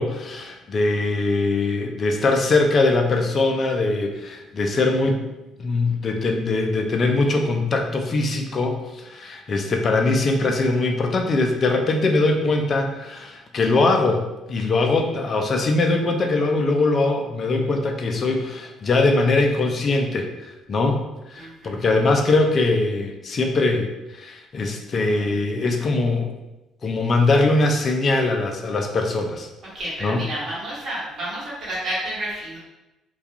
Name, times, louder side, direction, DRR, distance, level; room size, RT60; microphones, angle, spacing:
voice 1, 0.0-5.2 5.6-21.0 21.3-23.9 24.2-26.3 26.8-29.5 30.0-30.2, left 2 dB, 45° left, 3 dB, 0.4 m, -21 dB
voice 2, 21.4-21.8 29.7-32.6, right 1 dB, 55° right, -7 dB, 1.2 m, -30 dB
2.3 x 2.3 x 2.7 m, 1.0 s
hypercardioid pair, 50°, 0 cm